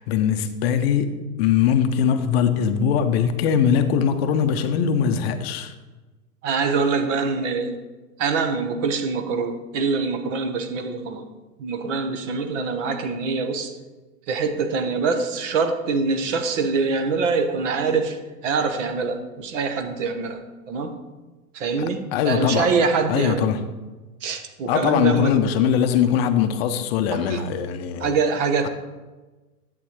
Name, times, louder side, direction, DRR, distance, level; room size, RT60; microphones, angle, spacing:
voice 1, 0.0-5.7 21.8-22.7 23.1-23.6 24.7-28.2, left 8 dB, 40° left, 9 dB, 0.7 m, -21 dB
voice 2, 6.4-7.8 8.2-11.2 11.6-13.8 14.3-18.2 18.4-20.4 20.7-20.9 21.5-23.5 24.2-25.3 27.1-27.4 28.0-28.7, right 4 dB, 50° right, 7 dB, 1.2 m, -24 dB
11.0 x 7.7 x 3.1 m, 1.2 s
figure-of-eight pair, 105°, 47 cm